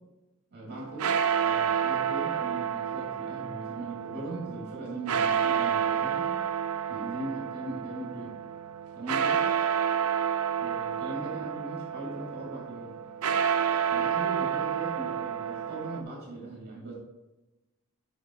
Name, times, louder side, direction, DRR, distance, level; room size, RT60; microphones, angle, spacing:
voice 1, 0.5-1.0 1.4-6.3 6.9-8.3 8.9-9.4 10.6-13.0 13.9-16.9, right 2 dB, 45° right, -5 dB, 2.4 m, -39 dB
sound 1, 0.7-16.0, right 8 dB, 75° right, 0.5 m, -29 dB
7.8 x 5.2 x 3.7 m, 1.0 s
head